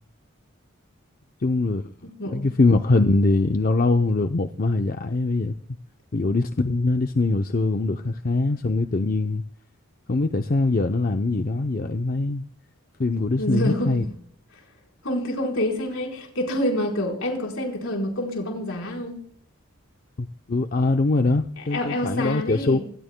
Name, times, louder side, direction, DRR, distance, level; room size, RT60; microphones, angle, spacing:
voice 1, 1.4-1.9 2.3-5.5 6.1-9.4 10.1-12.4 13.0-14.0 20.2-22.8, left 2 dB, 40° left, 0.6 m, -22 dB
voice 2, 13.4-14.1 15.0-19.2 21.7-22.8, left 1 dB, 70° left, 4.1 m, -27 dB
25.5 x 18.5 x 2.2 m
head